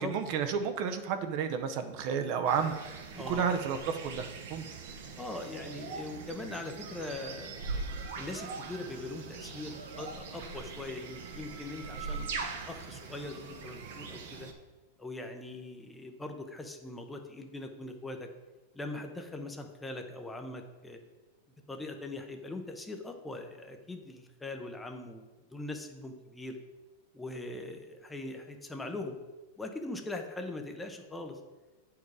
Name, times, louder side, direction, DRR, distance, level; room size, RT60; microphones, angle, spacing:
voice 1, 0.0-3.0 3.3-4.6, right 6 dB, 45° right, 8 dB, 0.7 m, -31 dB
sound 1, 2.5-14.5, right 4 dB, 70° right, 1.1 m, -41 dB
voice 2, 3.1-3.4 5.2-7.8 8.2-14.5 15.0-18.3 18.7-21.0 21.7-26.6 27.1-29.2 29.6-31.4, left 2 dB, 5° left, 5 dB, 0.7 m, -41 dB
8.7 x 4.7 x 4.8 m, 1.2 s
supercardioid pair, 155°, 0 cm